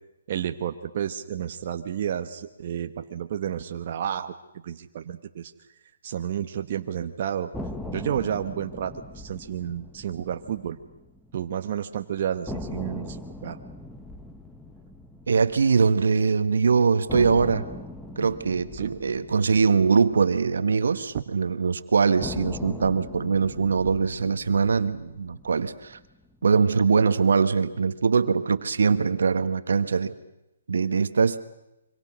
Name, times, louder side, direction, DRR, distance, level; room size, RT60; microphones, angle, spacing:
voice 1, 0.3-4.3 4.6-5.5 6.0-7.5 7.9-10.8 11.3-13.6 18.7-18.9 21.1-21.2, right 9 dB, 45° right, 6 dB, 1.1 m, -31 dB
sound 1, 7.5-11.6 11.9-12.0 12.5-16.5 17.1-21.4 22.2-26.6, left 1 dB, 5° left, 1.2 m, -40 dB
voice 2, 15.3-17.6 18.2-26.0 26.4-30.1 30.7-31.4, right 5 dB, 75° right, 11 dB, 1.6 m, -22 dB
26.0 x 25.0 x 6.3 m, 0.91 s
hypercardioid pair, 155°, 0 cm